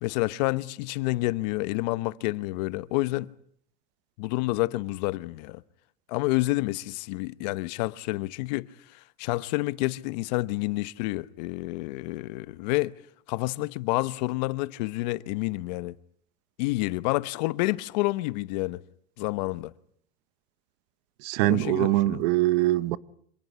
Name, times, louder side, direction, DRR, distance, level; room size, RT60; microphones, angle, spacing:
voice 1, 0.0-3.3 4.2-5.6 6.1-8.7 9.2-12.9 13.3-15.9 16.6-18.8 19.2-19.7 21.4-22.2, left 20 dB, 85° left, 1.0 m, -29 dB
voice 2, 21.2-23.0, right 17 dB, 80° right, 1.0 m, -23 dB
27.0 x 18.5 x 9.8 m
cardioid pair, 170°, 21 cm